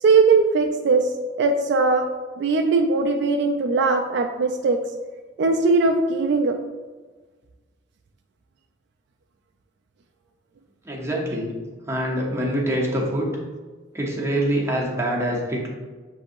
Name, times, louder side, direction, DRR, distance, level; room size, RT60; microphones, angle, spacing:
voice 1, 0.0-1.1 1.4-2.1 2.4-4.8 5.4-6.6, right 4 dB, 65° right, 4 dB, 0.3 m, -19 dB
voice 2, 10.9-11.5 11.9-13.3 13.9-15.7, right 1 dB, 15° right, -3 dB, 0.9 m, -25 dB
7.3 x 2.7 x 2.6 m, 1.3 s
head